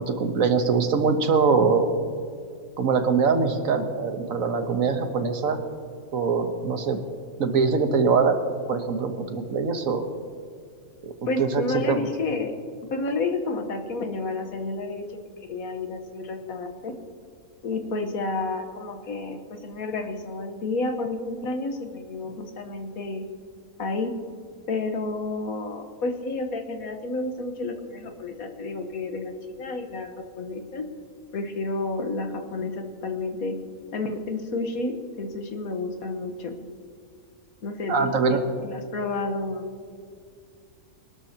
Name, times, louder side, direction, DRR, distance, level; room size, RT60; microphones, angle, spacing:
voice 1, 0.0-1.9 2.8-5.6 6.1-7.0 7.4-8.4 8.7-10.1 11.4-12.1 37.9-38.4, right 5 dB, 70° right, 7 dB, 1.5 m, -23 dB
voice 2, 11.3-12.5 12.9-15.0 15.5-16.9 17.6-23.2 23.8-24.1 24.7-30.1 30.4-30.8 31.3-33.6 33.9-36.5 37.6-39.7, left 3 dB, 85° left, 5 dB, 1.6 m, -30 dB
24.0 x 12.5 x 2.9 m, 2.1 s
omnidirectional pair, 1.5 m